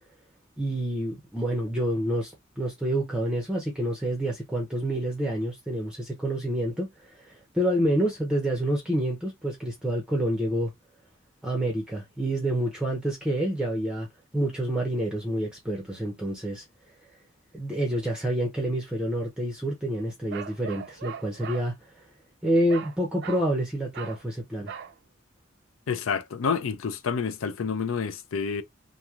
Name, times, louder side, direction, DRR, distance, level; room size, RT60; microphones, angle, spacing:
voice 1, 0.6-10.7 11.4-14.1 14.3-16.6 17.5-21.7 22.4-24.7, right 1 dB, 5° right, 0.5 m, -28 dB
Bark, 20.3-21.7 22.7-23.0 23.2-23.5 23.9-24.2 24.7-24.9, right 7 dB, 60° right, 0.4 m, -39 dB
voice 2, 25.9-28.6, left 6 dB, 85° left, 0.5 m, -28 dB
3.0 x 2.6 x 2.3 m
head